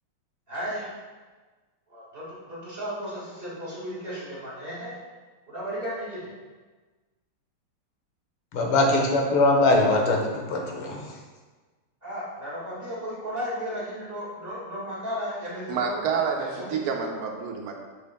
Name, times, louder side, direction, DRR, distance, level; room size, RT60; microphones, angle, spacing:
voice 1, 0.5-0.9 1.9-4.9 5.5-6.3 12.0-16.8, equal, 25° right, -8 dB, 1.9 m, -34 dB
voice 2, 8.5-11.1, left 2 dB, 75° left, 0 dB, 1.9 m, -22 dB
voice 3, 15.7-17.7, right 6 dB, 80° right, 2 dB, 1.7 m, -28 dB
6.9 x 6.7 x 2.3 m, 1.3 s
omnidirectional pair, 2.4 m